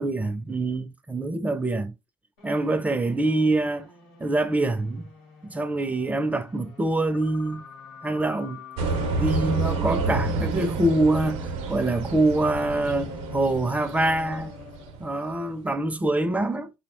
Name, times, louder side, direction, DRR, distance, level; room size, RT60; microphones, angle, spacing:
voice 1, 0.0-1.9 2.4-3.9 4.2-5.0 5.4-7.6 8.0-8.6 9.2-14.5 15.0-16.7, right 2 dB, 10° right, 0.4 m, -25 dB
sound 1, 2.4-15.1, left 6 dB, 90° left, 1.0 m, -46 dB
sound 2, 8.8-15.2, right 3 dB, 70° right, 0.5 m, -29 dB
2.8 x 2.1 x 2.9 m
supercardioid pair, 75°, 12 cm